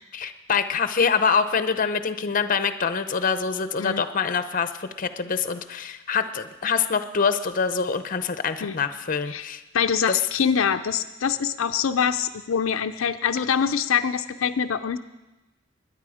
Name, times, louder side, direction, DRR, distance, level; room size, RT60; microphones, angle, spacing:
voice 1, 0.1-9.6 10.1-10.2, left 5 dB, 40° left, 11 dB, 0.7 m, -25 dB
voice 2, 9.7-15.0, left 7 dB, 80° left, 8 dB, 0.5 m, -24 dB
21.0 x 10.0 x 4.9 m, 1.1 s
head